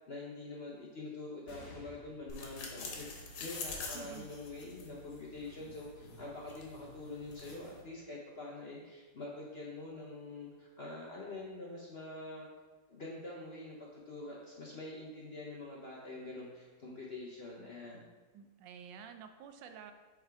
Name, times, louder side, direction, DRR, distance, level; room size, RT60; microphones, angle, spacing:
voice 1, 0.1-12.5 12.9-18.0, left 2 dB, 55° left, -3 dB, 0.7 m, -45 dB
sound 1, 1.5-8.4 9.0-9.1 10.2-10.7, left 2 dB, 70° left, 1.6 m, -61 dB
sound 2, 2.3-7.8, left 3 dB, 90° left, 1.7 m, -46 dB
voice 2, 3.9-4.3 18.3-19.9, right 7 dB, 85° right, 7 dB, 1.3 m, -50 dB
8.0 x 3.5 x 3.4 m, 1.3 s
omnidirectional pair, 2.0 m